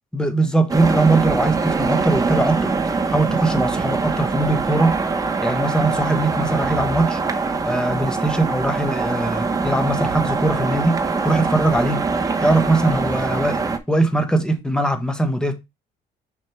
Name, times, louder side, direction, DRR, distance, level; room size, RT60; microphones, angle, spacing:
voice 1, 0.1-5.0 5.4-7.2 7.6-12.0 12.4-13.6 13.9-15.5, right 2 dB, 5° left, 1.2 m, -21 dB
sound 1, 0.7-13.8, right 4 dB, 20° right, 0.9 m, -23 dB
6.3 x 4.5 x 3.5 m
cardioid pair, 110°, 17 cm